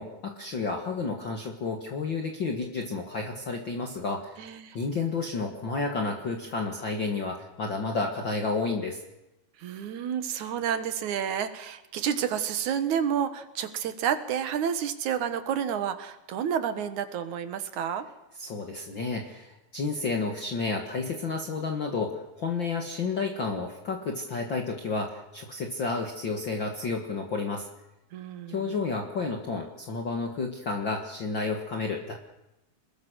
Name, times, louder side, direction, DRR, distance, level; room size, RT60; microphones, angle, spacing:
voice 1, 0.0-4.4 4.7-9.0 18.4-27.7 28.5-32.1, left 4 dB, 40° left, 2 dB, 2.2 m, -31 dB
voice 2, 4.4-4.8 9.6-18.1 28.1-28.7, right 8 dB, 75° right, 11 dB, 2.8 m, -30 dB
26.5 x 21.0 x 6.4 m, 0.94 s
omnidirectional pair, 3.5 m